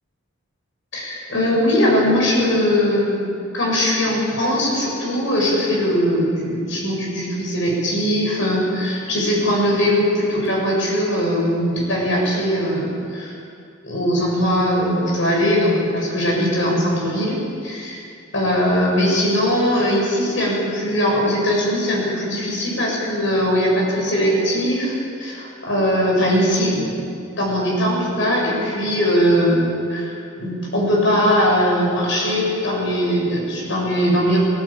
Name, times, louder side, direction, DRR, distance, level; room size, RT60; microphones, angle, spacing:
voice 1, 0.9-3.2 3.5-13.3 13.8-18.0 18.3-27.0 27.3-34.4, equal, 60° left, -3 dB, 7.2 m, -20 dB
18.0 x 17.0 x 8.7 m, 2.5 s
head